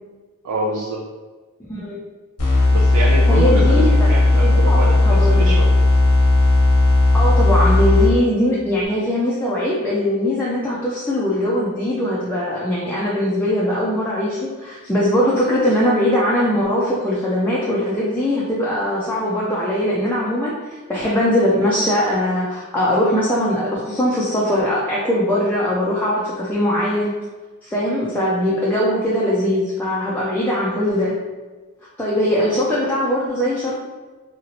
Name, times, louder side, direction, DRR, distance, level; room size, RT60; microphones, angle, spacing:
voice 1, 0.4-1.0 2.7-5.7, right 2 dB, 85° right, -2 dB, 0.4 m, -26 dB
voice 2, 1.7-2.0 3.3-3.9 4.3-5.6 7.1-27.1 27.6-31.1 32.0-33.8, left 1 dB, 10° left, -6 dB, 0.4 m, -21 dB
sound 1, 2.4-8.4, left 2 dB, 90° left, 1.0 m, -15 dB
2.9 x 2.9 x 2.7 m, 1.3 s
head